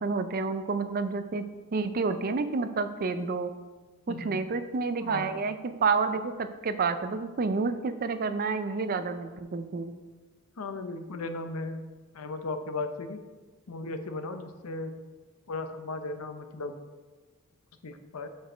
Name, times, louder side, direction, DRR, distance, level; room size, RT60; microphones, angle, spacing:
voice 1, 0.0-1.4 1.7-3.5 4.1-9.9, right 4 dB, 45° right, 10 dB, 0.4 m, -29 dB
voice 2, 5.0-5.3 10.6-11.8 12.1-13.2 13.7-14.9 15.5-16.8 17.8-18.3, left 3 dB, 80° left, 8 dB, 0.7 m, -36 dB
6.2 x 5.2 x 5.0 m, 1.3 s
head